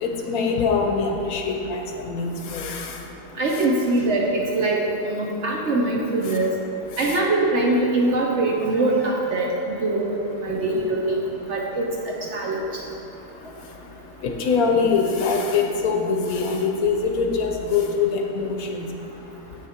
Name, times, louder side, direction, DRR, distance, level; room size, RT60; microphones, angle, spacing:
voice 1, 0.0-2.9 7.0-7.1 10.5-10.6 14.2-18.9, left 5 dB, 65° left, 2 dB, 1.1 m, -23 dB
voice 2, 3.4-6.6 7.0-11.2 11.5-12.7, right 2 dB, 60° right, -1 dB, 0.8 m, -23 dB
7.5 x 6.3 x 4.4 m, 2.8 s
omnidirectional pair, 1.7 m